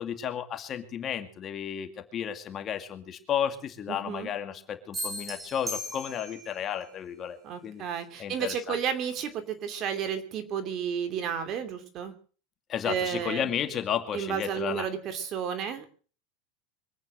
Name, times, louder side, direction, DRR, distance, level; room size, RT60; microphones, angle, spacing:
voice 1, 0.0-7.4 7.6-7.8 8.2-8.8 12.7-14.9, left 9 dB, 30° left, 7 dB, 2.3 m, -33 dB
voice 2, 3.9-4.3 7.4-12.1 12.8-13.5 14.1-15.9, right 8 dB, 40° right, 8 dB, 2.9 m, -32 dB
sound 1, 4.9-6.6, equal, 15° right, 3.1 m, -36 dB
24.0 x 9.1 x 6.4 m, 0.42 s
supercardioid pair, 135°, 0 cm